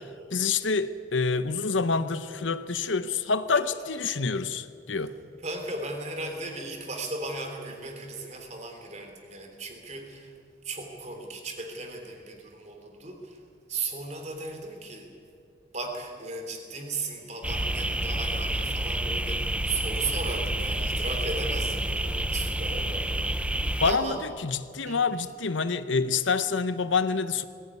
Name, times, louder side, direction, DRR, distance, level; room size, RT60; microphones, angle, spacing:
voice 1, 0.3-5.1 23.8-27.4, left 4 dB, 90° left, 0.9 m, -27 dB
voice 2, 5.4-10.3 10.6-13.4 13.7-15.1 15.7-23.2 23.8-24.2 24.8-25.0, right 3 dB, 40° right, 3.4 m, -36 dB
sound 1, 17.4-23.9, right 1 dB, 5° right, 0.5 m, -29 dB
20.0 x 16.5 x 9.6 m
head